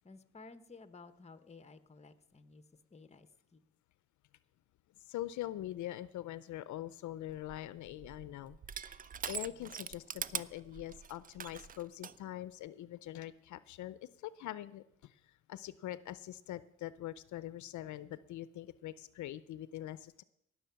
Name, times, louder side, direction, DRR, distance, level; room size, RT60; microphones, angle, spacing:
voice 1, 0.0-2.6 2.9-3.6, left 4 dB, 20° left, 12 dB, 0.9 m, -55 dB
voice 2, 5.0-9.0 9.3-15.2 15.5-20.2, left 13 dB, 70° left, 16 dB, 0.5 m, -43 dB
Crushing, 7.3-12.2, right 7 dB, 30° right, 0.4 m, -43 dB
18.0 x 6.9 x 5.8 m, 0.77 s
cardioid pair, 90°, 30 cm